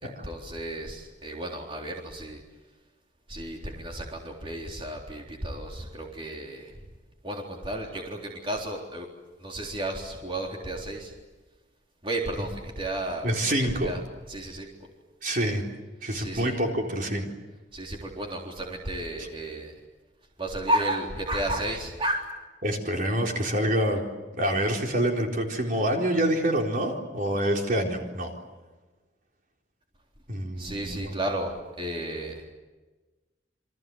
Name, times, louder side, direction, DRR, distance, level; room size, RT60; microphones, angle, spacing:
voice 1, 0.0-2.4 3.3-6.7 7.2-9.1 9.4-11.1 12.0-13.3 13.6-14.0 14.3-14.7 16.2-16.6 17.7-19.7 20.4-22.4 30.6-32.4, right 1 dB, 30° right, 0 dB, 3.8 m, -32 dB
voice 2, 13.2-13.9 15.2-15.6 16.0-17.3 22.6-24.0 24.4-28.4 30.3-31.1, right 1 dB, 50° right, 1 dB, 4.2 m, -26 dB
28.5 x 25.0 x 8.0 m, 1.2 s
head